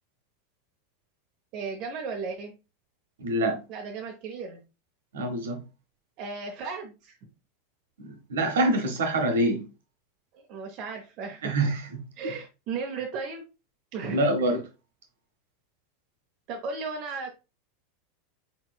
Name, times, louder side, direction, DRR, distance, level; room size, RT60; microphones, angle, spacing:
voice 1, 1.5-2.5 3.7-4.6 6.2-7.2 10.5-11.5 12.2-13.4 13.9-14.2 16.5-17.3, right 4 dB, 45° right, 0.7 m, -35 dB
voice 2, 3.2-3.6 5.1-5.6 8.0-9.7 11.4-12.0 14.1-14.6, right 1 dB, 65° right, 1.0 m, -25 dB
4.2 x 4.0 x 2.3 m
figure-of-eight pair, 85°, 0 cm